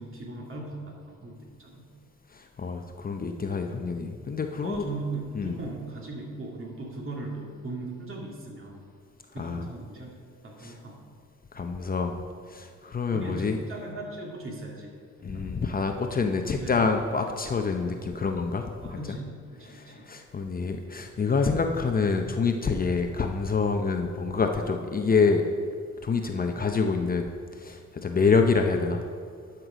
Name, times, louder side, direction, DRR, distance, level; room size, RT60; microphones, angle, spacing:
voice 1, 0.0-1.9 4.5-8.8 9.3-10.1 10.4-11.0 13.1-15.5 15.9-16.0 16.5-17.2 18.8-20.0 26.2-26.6, right 2 dB, 45° right, -1 dB, 2.4 m, -39 dB
voice 2, 2.3-4.8 5.4-5.6 9.4-9.7 10.6-10.7 11.5-12.2 12.5-13.6 15.2-19.2 19.6-25.4 26.0-27.3 27.6-29.0, left 4 dB, 30° left, 4 dB, 0.7 m, -27 dB
11.0 x 6.0 x 5.0 m, 2.1 s
cardioid pair, 90°, 30 cm